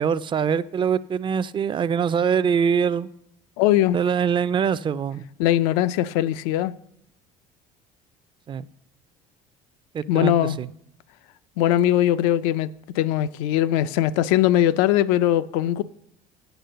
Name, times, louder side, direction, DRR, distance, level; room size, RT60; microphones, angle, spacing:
voice 1, 0.0-3.1 3.9-5.2 8.5-8.7 9.9-10.7, right 7 dB, 30° right, 0.3 m, -23 dB
voice 2, 3.6-4.0 5.4-6.7 10.1-10.6 11.6-12.7 13.0-15.8, left 12 dB, 90° left, 0.4 m, -20 dB
8.0 x 6.0 x 6.7 m
supercardioid pair, 100°, 17 cm